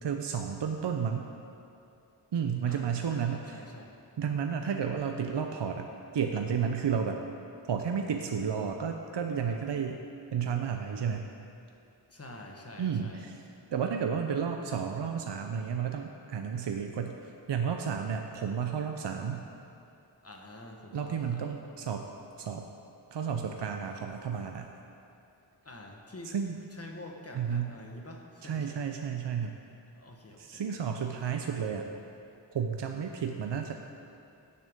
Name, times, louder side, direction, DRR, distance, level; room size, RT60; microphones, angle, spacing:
voice 1, 0.0-1.3 2.3-3.6 4.2-5.9 6.1-7.2 7.7-10.0 10.3-11.3 12.8-13.3 13.7-17.2 17.5-19.4 20.9-22.0 22.4-22.6 23.1-24.7 26.3-26.6 27.3-27.7 28.4-29.6 30.4-31.9 32.5-33.7, right 7 dB, 70° right, 4 dB, 0.6 m, -32 dB
voice 2, 2.7-3.9 12.1-13.3 20.2-21.6 25.6-26.3 26.7-28.8 29.9-30.6, left 1 dB, 35° left, 0 dB, 1.2 m, -47 dB
16.5 x 6.9 x 3.6 m, 2.6 s
wide cardioid pair, 80°, 44 cm